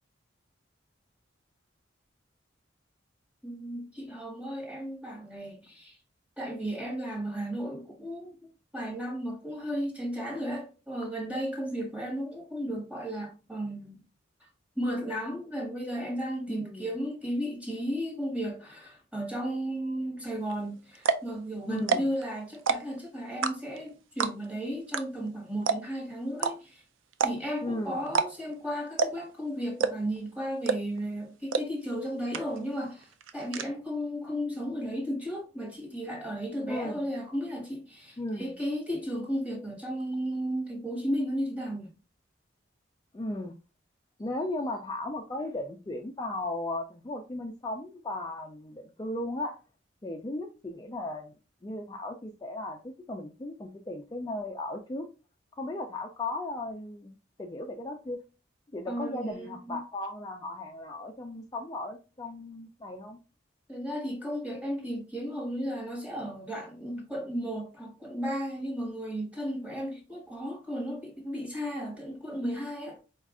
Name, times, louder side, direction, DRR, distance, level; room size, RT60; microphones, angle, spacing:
voice 1, 3.4-6.0 6.4-8.4 8.7-14.0 14.4-14.5 14.8-26.8 27.2-41.9 58.9-59.8 63.7-73.0, equal, 5° right, 1.2 m, -34 dB
voice 2, 16.5-16.9 21.7-22.1 27.6-28.0 36.6-37.0 38.2-38.5 43.1-43.5 44.2-49.6 50.0-51.3 51.6-55.1 55.6-58.2 58.7-63.2, left 2 dB, 20° left, 0.3 m, -36 dB
sound 1, 20.5-20.6 21.0-21.3 21.8-22.2 22.5-23.0 23.4-23.8 24.2-24.5 24.9-25.0 25.3-25.4 25.7-26.0 26.4-26.5 27.1-27.6 28.1-28.3 28.5-28.6 29.0-29.3 29.8-30.2 30.7-31.0 31.5-31.6 32.0-32.1 32.3-32.8 33.0-33.6, right 5 dB, 85° right, 0.4 m, -27 dB
4.4 x 2.4 x 3.6 m
head